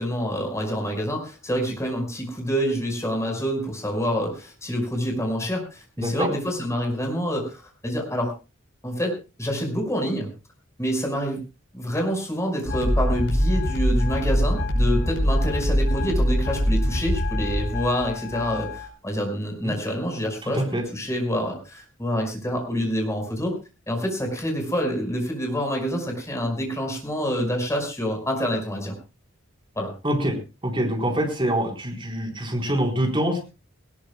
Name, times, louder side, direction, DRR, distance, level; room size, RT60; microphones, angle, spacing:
voice 1, 0.0-8.3 8.8-10.3 10.8-11.4 11.7-23.5 23.9-28.9 29.8-29.9, equal, 15° left, 2 dB, 5.5 m, -27 dB
sound 1, 12.7-18.9, equal, 60° left, 6.0 m, -23 dB
voice 2, 30.0-30.4 30.6-33.4, right 1 dB, 25° right, 1 dB, 4.3 m, -25 dB
20.0 x 19.5 x 2.3 m, 0.30 s
head